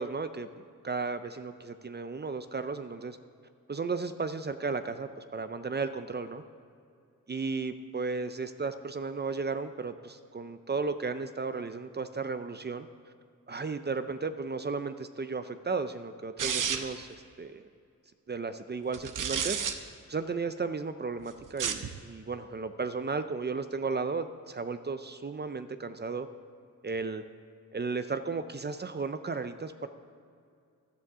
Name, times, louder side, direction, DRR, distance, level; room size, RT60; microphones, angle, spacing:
voice 1, 0.0-3.2 3.7-6.4 7.3-12.9 13.5-17.7 18.3-19.6 20.1-26.3 26.8-27.2 27.7-29.9, right 4 dB, 30° right, 10 dB, 0.5 m, -34 dB
sound 1, 16.4-17.0 18.9-19.7 21.5-21.9, right 7 dB, 75° right, 0.8 m, -31 dB
15.5 x 11.0 x 3.7 m, 2.4 s
wide cardioid pair, 90°, 32 cm